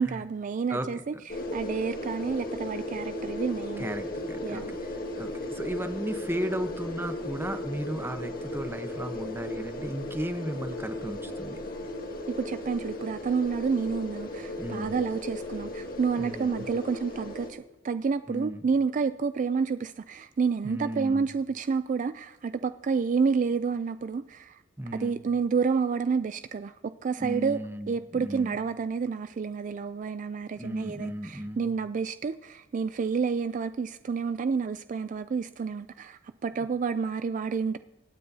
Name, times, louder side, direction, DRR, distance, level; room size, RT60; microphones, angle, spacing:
voice 1, 0.0-3.9 4.4-4.6 12.3-24.6 24.9-27.6 27.9-37.8, right 5 dB, 40° right, 12 dB, 0.3 m, -29 dB
sound 1, 1.3-17.5, left 1 dB, 50° left, 1.7 m, -36 dB
voice 2, 3.8-11.6 14.6-15.0 16.2-16.7 18.3-18.6 20.6-21.3 24.8-25.2 27.2-28.5 30.5-31.7, equal, 10° right, 8 dB, 0.9 m, -35 dB
24.5 x 9.5 x 2.7 m, 1.1 s
head